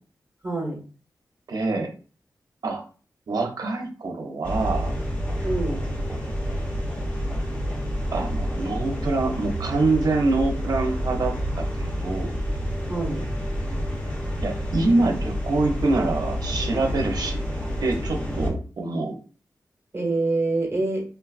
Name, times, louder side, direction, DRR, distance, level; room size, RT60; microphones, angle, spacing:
voice 1, 0.4-0.8 5.4-5.8 12.9-13.3 19.9-21.0, right 2 dB, 35° right, -1 dB, 1.1 m, -25 dB
voice 2, 1.5-1.9 2.6-2.8 3.3-4.9 8.1-12.4 14.4-17.4 17.8-19.2, right 3 dB, 70° right, 3 dB, 0.6 m, -25 dB
sound 1, 4.4-18.5, equal, 15° left, 0.7 m, -29 dB
3.4 x 2.2 x 2.4 m, 0.38 s
wide cardioid pair, 100°, 7 cm